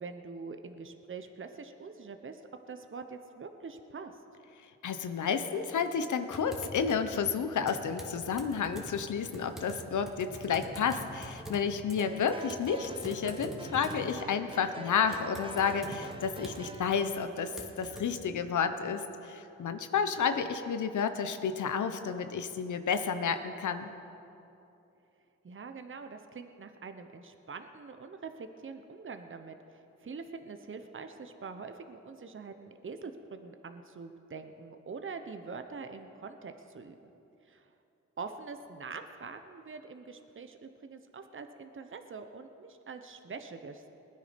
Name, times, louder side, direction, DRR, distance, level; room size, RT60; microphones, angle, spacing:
voice 1, 0.0-2.4 2.7-4.1 25.4-37.0 37.5-37.7 38.2-43.9, right 4 dB, 45° right, 7 dB, 1.0 m, -44 dB
voice 2, 4.8-23.9, left 6 dB, 80° left, 9 dB, 0.9 m, -31 dB
Typing, 6.3-18.1, equal, ahead, 2.4 m, -46 dB
sound 1, 12.0-16.9, right 2 dB, 15° right, 1.1 m, -46 dB
20.5 x 9.6 x 5.3 m, 2.8 s
cardioid pair, 55°, 30 cm